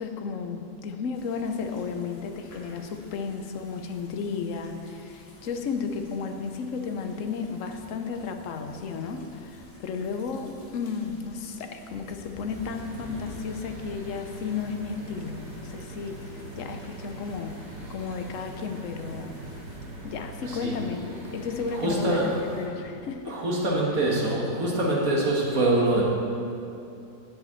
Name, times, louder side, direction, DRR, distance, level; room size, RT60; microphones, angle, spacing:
voice 1, 0.0-17.6 17.9-19.4 20.0-23.4, left 5 dB, 60° left, 6 dB, 1.0 m, -33 dB
sound 1, 1.1-19.8, left 1 dB, 40° left, 1.5 m, -50 dB
sound 2, 12.5-22.7, right 2 dB, 85° right, 2.2 m, -42 dB
voice 2, 20.4-20.8 21.7-22.4 23.2-26.0, right 2 dB, 60° right, -3 dB, 2.1 m, -24 dB
8.0 x 7.5 x 7.2 m, 2.6 s
omnidirectional pair, 1.7 m